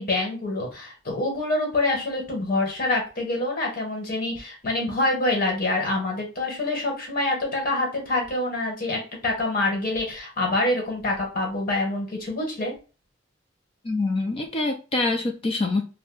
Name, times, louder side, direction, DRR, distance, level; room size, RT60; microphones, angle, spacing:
voice 1, 0.0-12.7, left 2 dB, 45° left, 1.2 m, -26 dB
voice 2, 13.8-15.8, left 2 dB, 30° left, 0.4 m, -25 dB
2.6 x 2.1 x 3.7 m
head